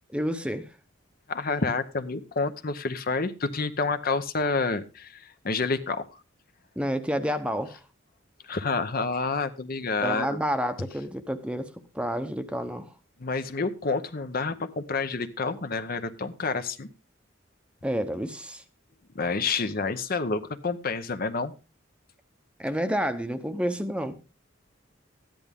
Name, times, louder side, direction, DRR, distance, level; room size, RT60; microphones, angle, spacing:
voice 1, 0.1-0.7 6.8-7.8 10.0-12.9 17.8-18.6 22.6-24.2, equal, 5° right, 9 dB, 0.8 m, -29 dB
voice 2, 1.3-6.0 8.4-10.3 13.2-16.9 19.1-21.5, left 4 dB, 50° left, 10 dB, 0.8 m, -29 dB
13.5 x 10.5 x 3.6 m, 0.30 s
head